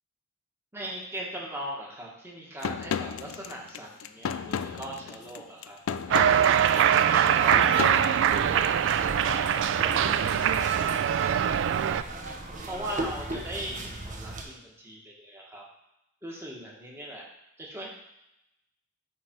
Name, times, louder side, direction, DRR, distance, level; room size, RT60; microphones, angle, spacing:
voice 1, 0.7-5.8 6.1-8.8 9.2-12.0 12.7-15.6 16.2-17.2 17.6-17.9, right 1 dB, 10° right, -3 dB, 1.4 m, -40 dB
sound 1, 2.6-9.0, left 7 dB, 75° left, 0.4 m, -34 dB
Cheering, 6.1-12.0, right 9 dB, 60° right, 0.3 m, -23 dB
sound 2, 8.3-14.4, right 1 dB, 40° right, 0.9 m, -38 dB
9.6 x 3.4 x 4.5 m, 0.84 s
head